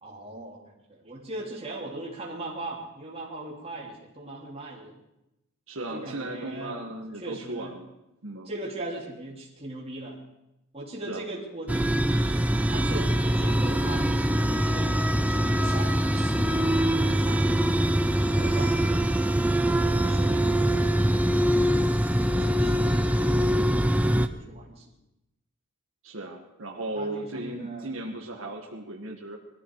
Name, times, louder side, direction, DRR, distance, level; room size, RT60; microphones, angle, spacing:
voice 1, 0.0-5.0 5.9-7.7 8.5-10.2 10.7-19.2 20.0-20.7 22.1-24.8 27.0-28.3, right 2 dB, 30° right, -3 dB, 3.5 m, -40 dB
voice 2, 5.7-7.9 8.2-8.5 11.1-11.2 26.0-29.4, right 2 dB, 70° right, 1 dB, 1.8 m, -36 dB
sound 1, 11.7-24.3, right 1 dB, 5° right, 0.6 m, -23 dB
21.0 x 14.0 x 4.9 m, 0.90 s
head